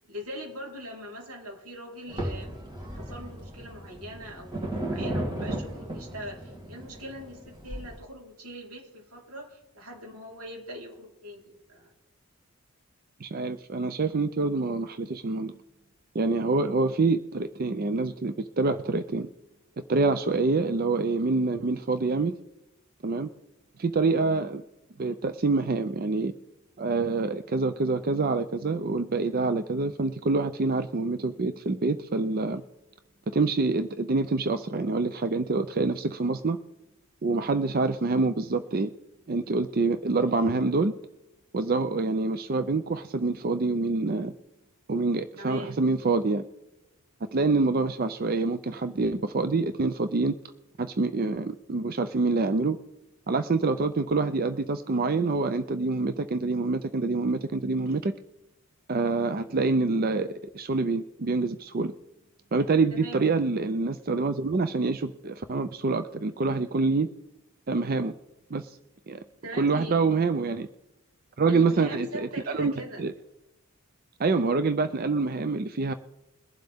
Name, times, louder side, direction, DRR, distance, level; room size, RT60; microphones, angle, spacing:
voice 1, 0.1-2.5 2.9-11.9 45.4-45.7 62.9-63.3 69.4-70.0 71.5-73.0, equal, 90° right, -1 dB, 4.1 m, -41 dB
sound 1, 2.1-8.0, right 1 dB, 20° right, 2.6 m, -35 dB
voice 2, 13.2-15.6 16.1-19.3 19.9-22.4 23.0-23.3 23.8-24.6 25.0-26.3 26.8-32.6 33.3-36.6 37.2-38.9 39.3-40.9 41.5-44.3 44.9-46.4 47.3-50.3 50.8-52.8 53.3-58.1 58.9-60.3 60.5-61.9 62.5-67.1 67.7-68.1 68.5-68.8 69.1-69.2 69.5-70.7 71.4-72.3 72.5-72.7 73.0-73.1 74.2-75.9, right 3 dB, 45° right, 11 dB, 0.5 m, -26 dB
22.5 x 7.6 x 3.6 m, 0.97 s
head